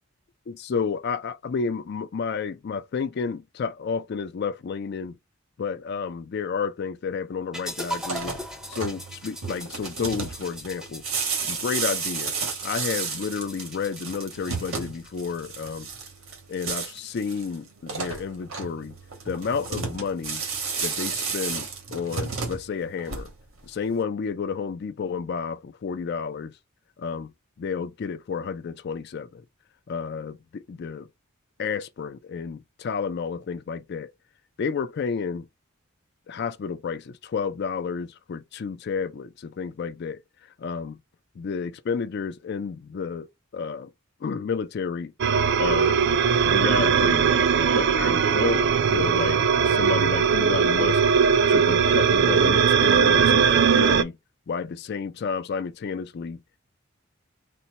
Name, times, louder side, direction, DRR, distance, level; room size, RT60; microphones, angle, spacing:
voice 1, 0.5-5.2 5.6-8.4 8.7-11.0 11.5-12.3 12.6-15.9 16.5-18.9 19.3-20.4 20.8-23.3 23.6-26.5 27.0-27.3 27.6-29.4 29.9-31.1 31.6-34.1 34.6-35.5 36.3-40.2 40.6-41.0 41.4-43.3 43.5-43.9 44.2-45.1 45.6-46.0 46.4-47.4 47.7-51.0 51.5-54.2 54.5-56.4, left 5 dB, 55° left, 0.4 m, -31 dB
sound 1, 7.5-15.6, equal, ahead, 0.5 m, -40 dB
sound 2, 7.9-23.6, right 5 dB, 85° right, 1.3 m, -32 dB
sound 3, 45.2-54.0, right 6 dB, 55° right, 0.3 m, -20 dB
4.2 x 2.1 x 4.0 m
head